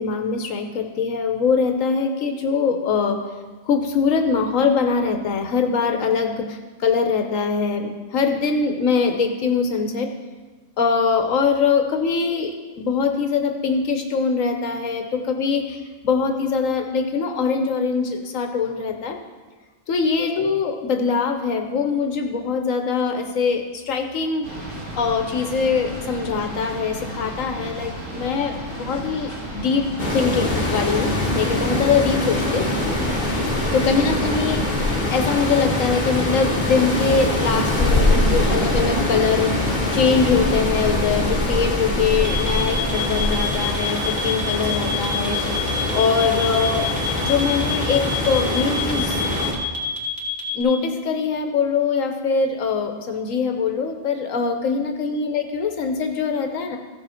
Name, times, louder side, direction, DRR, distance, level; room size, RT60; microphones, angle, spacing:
voice 1, 0.0-3.2 3.7-10.1 10.8-15.8 16.0-19.2 19.9-24.5 25.0-32.6 33.7-34.8 35.1-39.5 39.9-45.4 45.9-46.9 47.3-49.2 50.5-56.8, left 5 dB, 80° left, 5 dB, 1.2 m, -22 dB
sound 1, 24.4-40.8, right 1 dB, 70° right, 3.5 m, -34 dB
sound 2, 30.0-49.5, left 1 dB, 35° left, 1.6 m, -23 dB
sound 3, 42.2-50.6, right 2 dB, 90° right, 2.3 m, -30 dB
15.0 x 6.5 x 4.3 m, 1.3 s
omnidirectional pair, 1.4 m